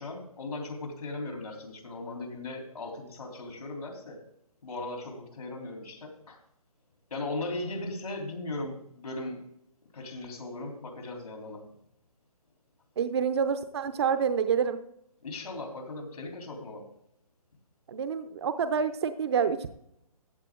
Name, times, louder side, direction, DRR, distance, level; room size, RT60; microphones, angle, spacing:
voice 1, 0.0-4.2 4.6-6.4 7.1-9.4 9.9-11.7 15.2-16.9, left 2 dB, 80° left, 2 dB, 3.4 m, -38 dB
voice 2, 13.0-14.8 17.9-19.7, right 7 dB, 45° right, 10 dB, 0.6 m, -27 dB
14.5 x 8.3 x 3.7 m, 0.77 s
hypercardioid pair, 160°, 19 cm